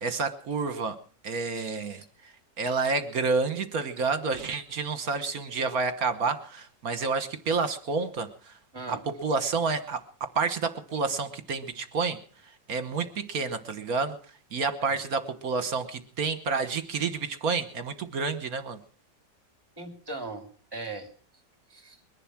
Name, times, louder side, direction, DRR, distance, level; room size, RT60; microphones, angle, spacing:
voice 1, 0.0-1.0 1.2-2.0 2.6-8.3 8.9-9.0 9.2-12.2 12.7-14.2 14.5-18.8, right 4 dB, 55° right, 11 dB, 1.6 m, -29 dB
voice 2, 1.6-2.0 8.7-9.0 14.9-15.0 19.8-20.4 20.7-21.1 21.7-22.0, right 3 dB, 10° right, 5 dB, 2.9 m, -39 dB
22.0 x 11.0 x 6.0 m, 0.43 s
omnidirectional pair, 1.9 m